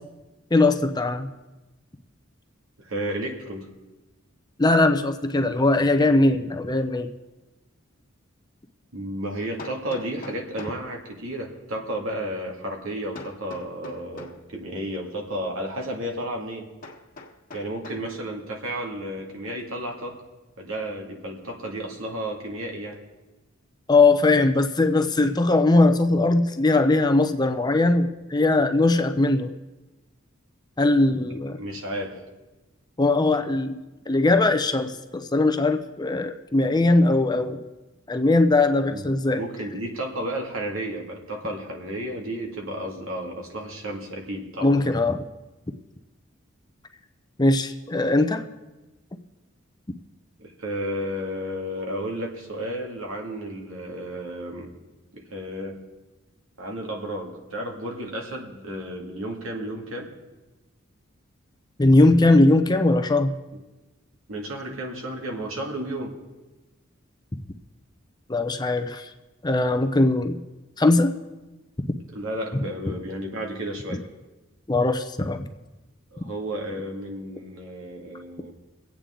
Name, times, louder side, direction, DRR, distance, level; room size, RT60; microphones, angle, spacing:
voice 1, 0.5-1.3 4.6-7.1 23.9-29.5 30.8-31.6 33.0-37.6 38.1-39.4 44.6-45.2 47.4-48.4 61.8-63.3 68.3-69.1 69.4-70.4 70.8-71.1 74.7-75.5, left 2 dB, 20° left, 6 dB, 0.7 m, -20 dB
voice 2, 2.8-3.7 8.9-16.7 17.5-20.2 20.6-23.0 31.6-32.2 38.9-39.1 39.4-44.8 50.4-54.7 55.1-55.8 56.6-60.1 64.3-66.1 72.1-74.0 76.1-78.5, right 1 dB, 90° right, 0 dB, 2.3 m, -32 dB
Hammer, 8.0-8.1 9.6-10.9 13.1-14.4 16.8-18.1, left 3 dB, 45° left, 1.5 m, -42 dB
24.0 x 8.5 x 3.8 m, 1.1 s
head